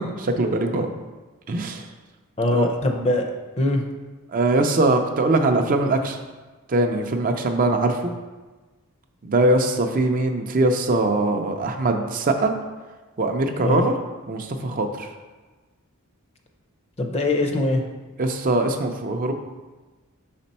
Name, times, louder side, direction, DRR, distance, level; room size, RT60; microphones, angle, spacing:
voice 1, 0.2-0.9 1.5-1.9 2.5-2.7 4.3-6.2 6.7-8.1 9.2-12.5 13.2-13.9 14.3-15.1 18.2-19.3, right 2 dB, 40° right, 5 dB, 0.5 m, -22 dB
voice 2, 2.4-3.3 3.6-3.8 13.6-13.8 17.0-17.8, left 2 dB, 30° left, 3 dB, 0.6 m, -22 dB
5.9 x 4.2 x 4.2 m, 1.3 s
head